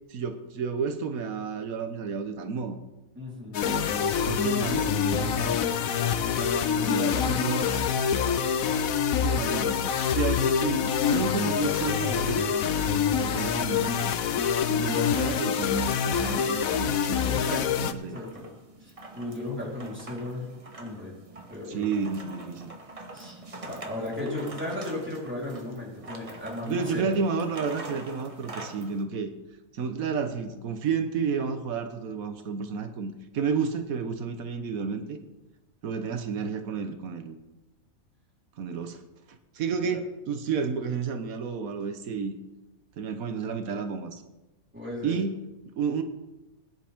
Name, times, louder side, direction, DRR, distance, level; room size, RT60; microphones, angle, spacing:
voice 1, 0.1-2.8 3.6-5.6 6.8-7.7 9.2-14.2 14.7-17.4 17.8-18.2 21.7-22.7 26.6-29.3 29.7-35.2 35.8-37.4 38.6-39.0 39.5-42.3 43.0-44.2 45.0-46.0, right 5 dB, 85° right, 8 dB, 1.4 m, -31 dB
voice 2, 3.1-4.1 6.2-7.7 17.3-18.5 18.8-20.5 20.8-21.1 21.5-21.8 23.1-27.1 35.9-36.2 39.9-40.0 44.7-45.2, left 1 dB, 10° right, -5 dB, 3.8 m, -36 dB
sound 1, 3.5-17.9, left 8 dB, 80° left, 1.2 m, -26 dB
sound 2, 14.2-29.0, right 2 dB, 25° right, 1.1 m, -45 dB
20.5 x 10.0 x 3.6 m, 1.0 s
omnidirectional pair, 1.4 m